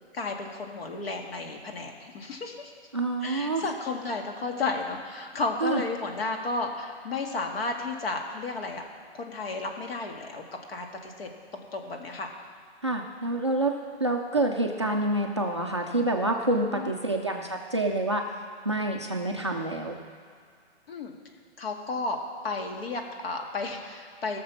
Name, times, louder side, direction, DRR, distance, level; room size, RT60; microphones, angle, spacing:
voice 1, 0.1-2.7 3.2-8.8 9.1-12.3 16.4-17.0 20.9-21.1 21.6-22.2 22.4-24.4, left 3 dB, 60° left, 2 dB, 1.8 m, -33 dB
voice 2, 2.9-3.6 5.6-5.8 12.8-18.2 18.7-20.0, right 2 dB, 25° right, 1 dB, 0.4 m, -27 dB
17.5 x 6.6 x 5.7 m, 2.1 s
hypercardioid pair, 170°, 34 cm